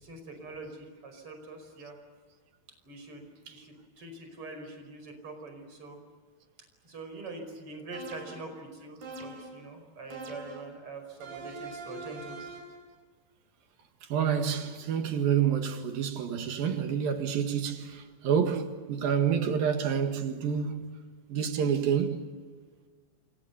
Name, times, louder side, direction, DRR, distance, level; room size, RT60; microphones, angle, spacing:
voice 1, 0.0-2.0 2.8-6.0 6.8-12.4, right 2 dB, 35° right, 6.0 m, -44 dB
sound 1, 7.9-8.6 9.0-9.6 10.1-10.7 11.2-12.8, right 3 dB, 90° right, 5.9 m, -43 dB
voice 2, 14.1-20.9 21.3-22.2, right 7 dB, 70° right, 3.5 m, -28 dB
29.0 x 26.0 x 7.0 m
omnidirectional pair, 4.4 m